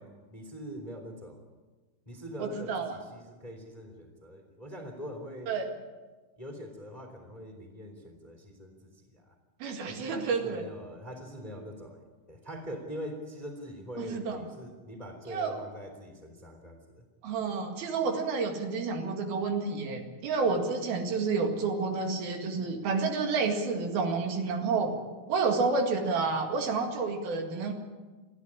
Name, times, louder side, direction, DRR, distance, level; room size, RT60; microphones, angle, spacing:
voice 1, 0.0-1.4 2.1-5.5 6.4-9.3 9.9-17.1, equal, 10° left, 3 dB, 2.4 m, -43 dB
voice 2, 2.4-3.0 5.5-5.7 9.6-10.6 14.0-14.4 15.3-15.6 17.2-25.0 25.3-27.7, right 4 dB, 70° right, 4 dB, 3.8 m, -29 dB
28.5 x 11.0 x 9.8 m, 1.3 s
omnidirectional pair, 4.5 m